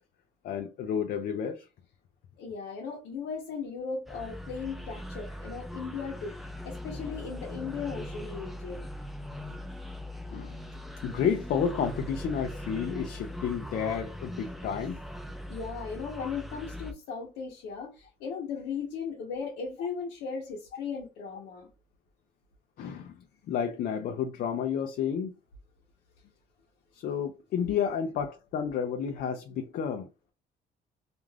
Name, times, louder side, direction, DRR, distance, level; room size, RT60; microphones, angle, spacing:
voice 1, 0.4-1.7 10.3-10.6 11.0-15.0 22.8-25.3 26.9-30.3, left 7 dB, 60° left, 0.4 m, -31 dB
voice 2, 2.4-8.9 15.5-21.7, left 5 dB, 85° left, 0.8 m, -37 dB
sound 1, 4.1-16.9, left 1 dB, ahead, 0.5 m, -40 dB
2.4 x 2.3 x 3.2 m
cardioid pair, 110°, 17 cm